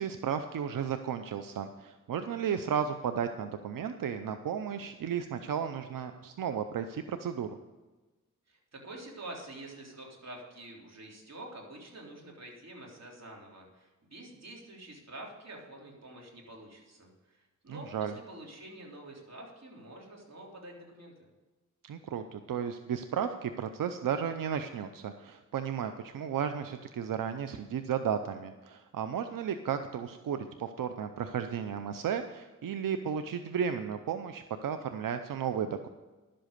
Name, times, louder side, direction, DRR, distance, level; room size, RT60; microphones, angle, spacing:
voice 1, 0.0-7.6 17.7-18.1 21.8-35.9, right 8 dB, 90° right, 9 dB, 0.6 m, -34 dB
voice 2, 8.5-21.1, right 1 dB, 55° right, -1 dB, 3.6 m, -47 dB
11.5 x 7.7 x 6.6 m, 1.2 s
cardioid pair, 65°, 32 cm